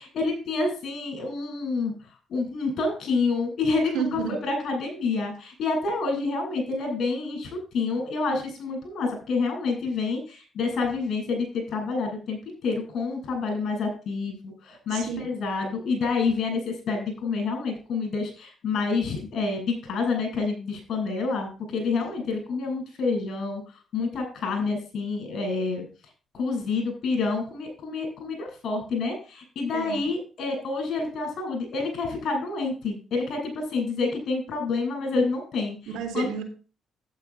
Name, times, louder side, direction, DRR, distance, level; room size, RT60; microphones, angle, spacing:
voice 1, 0.0-1.9 2.3-23.6 23.9-25.8 26.3-35.8 36.1-36.3, left 4 dB, 60° left, 3 dB, 6.9 m, -28 dB
voice 2, 3.9-4.4 14.9-15.2 22.0-22.1 29.7-30.0 35.9-36.4, right 7 dB, 90° right, 5 dB, 3.1 m, -31 dB
11.5 x 9.5 x 3.4 m, 0.35 s
cardioid pair, 90°, 0 cm